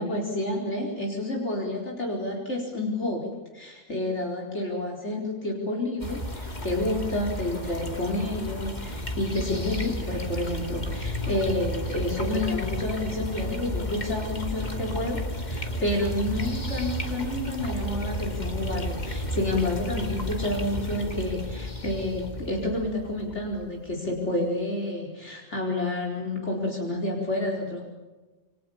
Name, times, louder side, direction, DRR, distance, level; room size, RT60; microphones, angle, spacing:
voice 1, 0.0-27.9, left 1 dB, 55° left, 0 dB, 4.8 m, -29 dB
sound 1, 6.0-24.2, equal, 30° left, 2.9 m, -32 dB
29.0 x 25.0 x 7.2 m, 1.2 s
omnidirectional pair, 1.5 m